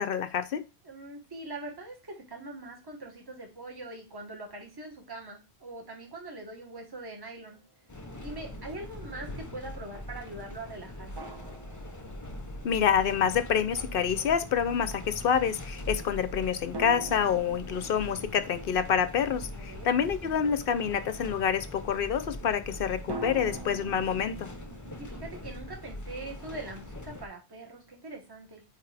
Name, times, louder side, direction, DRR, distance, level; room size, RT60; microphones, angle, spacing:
voice 1, 0.0-0.7 12.6-24.5, left 7 dB, 60° left, 12 dB, 0.7 m, -27 dB
voice 2, 0.8-7.6 8.1-11.3 19.5-20.0 24.9-28.6, right 2 dB, 20° right, 1 dB, 1.3 m, -42 dB
sound 1, 7.5-7.7 11.2-12.7 16.7-20.4 23.1-25.8, right 2 dB, 35° right, 0.4 m, -43 dB
sound 2, 7.9-27.3, left 1 dB, 20° left, 0.6 m, -42 dB
8.6 x 3.3 x 3.3 m, 0.28 s
omnidirectional pair, 1.3 m